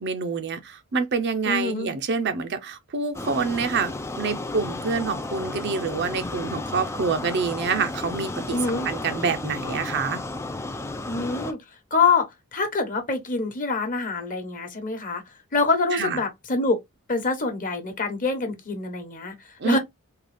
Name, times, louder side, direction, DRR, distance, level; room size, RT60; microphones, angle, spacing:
voice 1, 0.0-8.6 8.8-10.2 15.9-16.2 19.6-19.8, right 5 dB, 50° right, 0.6 m, -27 dB
voice 2, 1.4-1.9 8.5-8.9 11.1-11.6 11.9-15.2 15.5-16.8 17.1-19.8, left 4 dB, 35° left, 1.0 m, -25 dB
sound 1, 3.1-11.5, left 2 dB, 10° left, 0.3 m, -33 dB
3.8 x 2.3 x 3.3 m
head